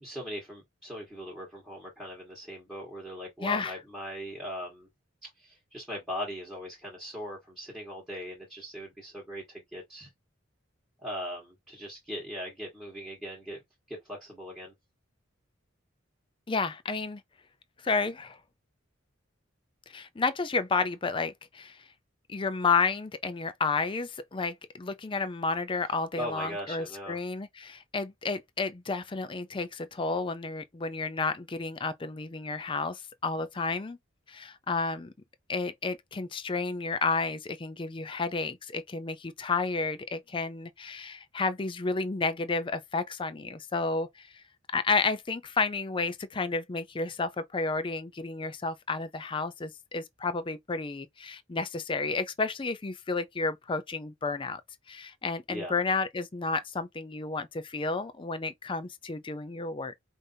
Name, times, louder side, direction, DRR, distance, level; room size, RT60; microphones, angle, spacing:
voice 1, 0.0-4.9 5.2-10.1 11.0-13.6 13.9-14.7 26.2-27.2 55.5-55.7, equal, ahead, 1.5 m, -39 dB
voice 2, 3.4-3.8 16.5-17.2 17.8-18.4 19.9-21.8 22.3-34.0 34.3-35.1 35.5-44.4 44.7-54.6 54.9-59.9, left 4 dB, 25° left, 0.5 m, -31 dB
5.1 x 2.6 x 2.7 m
head